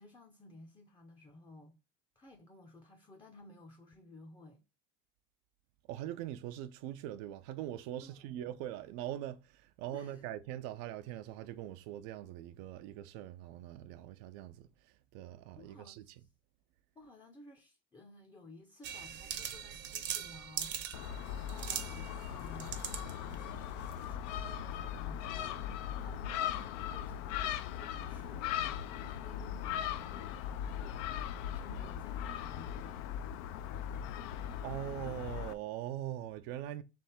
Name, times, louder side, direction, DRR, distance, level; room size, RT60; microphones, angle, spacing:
voice 1, 0.0-1.8 2.2-4.6 8.0-8.3 9.9-10.3 15.6-16.3 17.0-31.0 31.5-33.1, left 2 dB, 15° left, 0.6 m, -56 dB
voice 2, 5.9-14.7 15.1-16.0 34.6-36.8, right 12 dB, 75° right, 0.5 m, -42 dB
sound 1, 18.8-24.1, right 8 dB, 40° right, 0.7 m, -42 dB
Gull seagull, 20.9-35.5, left 10 dB, 65° left, 0.5 m, -39 dB
3.4 x 3.1 x 4.3 m
supercardioid pair, 110°, 29 cm